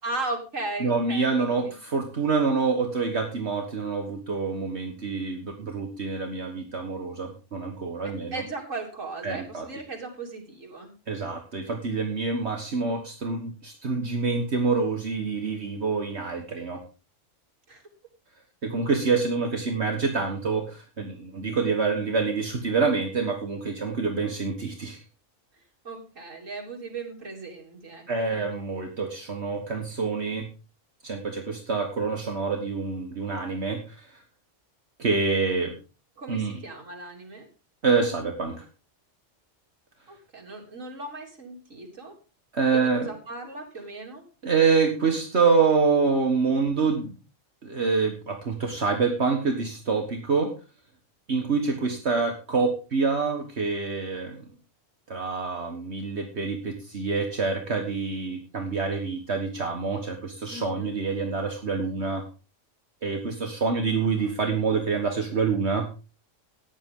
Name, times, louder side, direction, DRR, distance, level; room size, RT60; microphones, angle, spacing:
voice 1, 0.0-1.7 8.0-10.9 17.7-17.8 25.8-28.5 36.2-37.5 40.1-42.2 42.7-44.2 60.5-61.0 63.8-64.3, right 2 dB, 85° right, 0 dB, 3.6 m, -37 dB
voice 2, 0.8-8.4 9.2-9.7 11.1-16.8 18.6-25.0 28.1-30.5 31.0-34.1 35.0-35.7 36.3-36.6 37.8-38.6 42.5-43.1 44.4-47.1 47.6-50.5 51.3-54.4 55.1-62.2 63.0-65.9, right 4 dB, 60° right, 3 dB, 1.8 m, -26 dB
15.0 x 10.5 x 3.8 m, 0.33 s
omnidirectional pair, 1.3 m